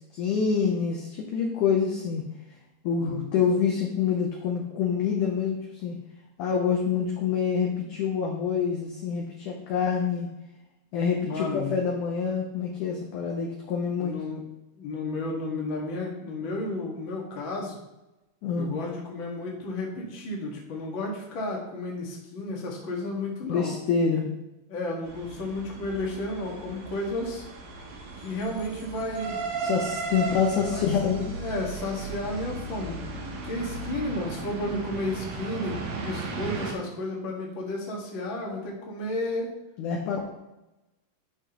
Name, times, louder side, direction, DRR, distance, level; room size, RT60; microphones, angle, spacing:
voice 1, 0.0-2.2 2.8-6.0 6.4-10.3 10.9-14.2 18.4-18.8 23.4-24.3 29.6-31.3 39.8-40.2, left 6 dB, 75° left, 1 dB, 1.8 m, -26 dB
voice 2, 3.0-3.4 11.2-11.7 14.0-14.4 14.8-17.8 18.5-23.7 24.7-27.4 28.2-29.5 30.2-30.3 30.7-30.9 31.3-33.0 33.4-39.5, left 2 dB, 45° left, -2 dB, 1.6 m, -32 dB
sound 1, 25.0-36.7, right 3 dB, 70° right, 2.7 m, -36 dB
11.0 x 5.8 x 3.0 m, 0.97 s
omnidirectional pair, 4.6 m